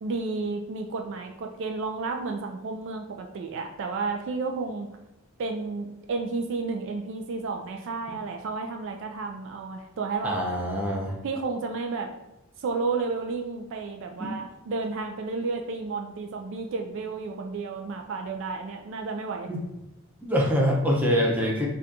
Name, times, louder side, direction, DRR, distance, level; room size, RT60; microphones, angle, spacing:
voice 1, 0.0-4.9 5.4-10.4 11.2-12.1 12.6-19.5, right 4 dB, 60° right, 4 dB, 0.3 m, -32 dB
voice 2, 10.2-11.2 14.2-14.3 19.5-19.6 20.2-21.7, equal, 10° right, -3 dB, 0.5 m, -24 dB
4.0 x 2.2 x 2.5 m, 0.93 s
head